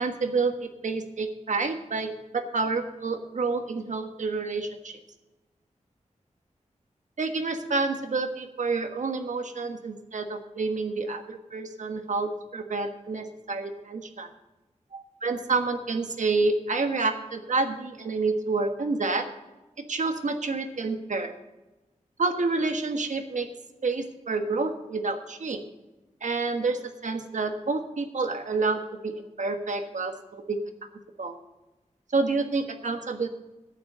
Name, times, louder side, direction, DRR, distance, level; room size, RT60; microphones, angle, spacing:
voice 1, 0.0-5.0 7.2-14.3 14.9-19.3 19.9-21.3 22.2-23.5 23.8-25.6 26.2-30.6 31.2-31.4 32.1-33.3, right 3 dB, 75° right, 6 dB, 1.4 m, -28 dB
11.0 x 9.0 x 6.7 m, 1.1 s
wide cardioid pair, 115°, 13 cm